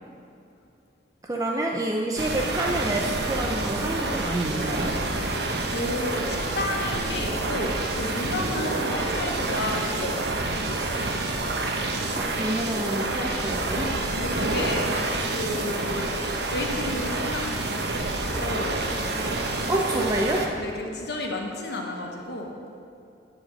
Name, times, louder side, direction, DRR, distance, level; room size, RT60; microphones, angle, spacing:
voice 1, 1.2-4.9 12.2-13.9 19.7-20.4, right 1 dB, 20° right, 0 dB, 0.6 m, -28 dB
sound 1, 2.2-20.5, right 2 dB, 65° right, 1.1 m, -28 dB
voice 2, 5.7-10.3 14.2-14.9 15.3-17.8 18.4-18.9 20.6-22.5, left 2 dB, 70° left, 1 dB, 1.0 m, -32 dB
12.0 x 5.1 x 7.6 m, 2.6 s
head